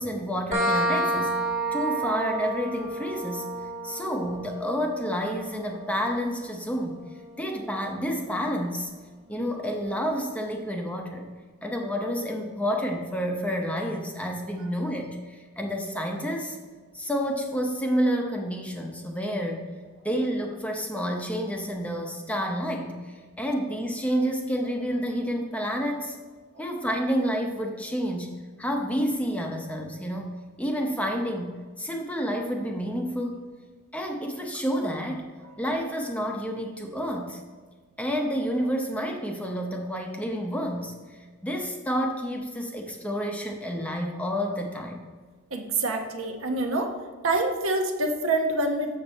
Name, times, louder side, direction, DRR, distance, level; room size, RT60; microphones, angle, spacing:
voice 1, 0.0-1.4 1.7-3.5 3.8-7.0 7.4-8.9 9.3-11.3 11.6-16.6 16.9-19.7 20.0-26.2 26.6-33.4 33.9-35.3 35.6-37.4 38.0-45.0, equal, 5° left, 1 dB, 0.6 m, -29 dB
sound 1, 0.5-7.9, right 1 dB, 30° right, 1.5 m, -31 dB
voice 2, 45.5-46.9 47.2-49.0, right 2 dB, 70° right, 4 dB, 0.9 m, -26 dB
7.1 x 6.5 x 4.0 m, 1.5 s
head